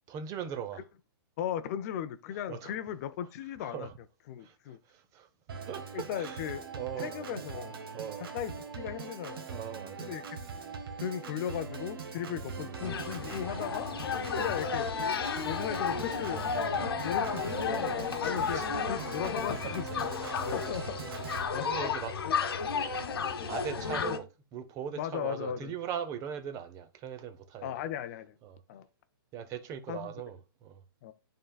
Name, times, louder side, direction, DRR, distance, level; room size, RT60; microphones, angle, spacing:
voice 1, 0.1-0.8 2.3-2.7 3.6-3.9 4.4-7.5 7.9-8.3 9.4-10.2 12.3-12.5 13.6-13.8 16.3-16.6 17.5-18.0 18.4-18.7 19.5-19.8 20.2-20.6 21.6-22.2 23.2-27.7 28.4-28.6 29.3-30.8, right 8 dB, 25° right, 0.7 m, -41 dB
voice 2, 1.4-4.8 5.9-6.6 7.0-7.8 8.2-9.5 10.0-10.2 11.0-13.9 14.4-14.9 15.4-16.4 17.0-21.0 21.5-21.9 22.2-22.4 25.0-25.7 27.6-28.4 28.7-28.9 29.9-30.1 31.0-31.1, left 9 dB, 40° left, 0.5 m, -37 dB
Organ, 5.5-21.5, right 6 dB, 70° right, 1.4 m, -41 dB
sound 1, 12.8-24.2, left 6 dB, 80° left, 1.1 m, -33 dB
11.0 x 3.8 x 2.3 m
hypercardioid pair, 140°, 13 cm